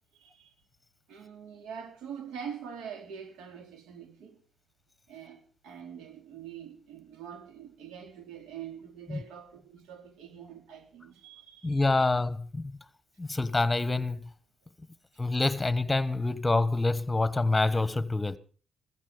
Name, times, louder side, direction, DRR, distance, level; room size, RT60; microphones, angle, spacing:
voice 1, 0.1-0.6 1.1-4.4 5.1-12.1 13.3-13.5, right 8 dB, 85° right, 4.2 m, -44 dB
voice 2, 11.6-12.8 13.2-14.3 15.2-18.4, left 2 dB, 15° left, 1.3 m, -27 dB
15.5 x 14.5 x 5.2 m
cardioid pair, 90°, 0 cm